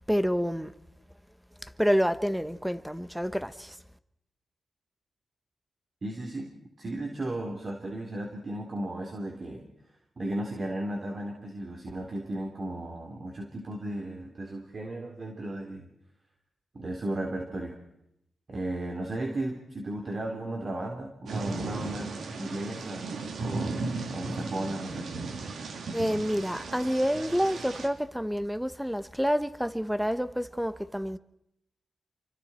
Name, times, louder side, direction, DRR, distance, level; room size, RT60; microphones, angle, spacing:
voice 1, 0.1-0.7 1.6-3.8 25.9-31.2, equal, ahead, 1.3 m, -28 dB
voice 2, 6.0-6.5 6.8-9.7 10.2-15.9 16.7-17.7 18.5-23.1 23.3-23.8 24.1-25.1, right 1 dB, 45° right, 3.8 m, -35 dB
Thunder / Rain, 21.3-27.9, right 3 dB, 80° right, 3.0 m, -35 dB
29.5 x 24.0 x 4.5 m
cardioid pair, 75°, 0 cm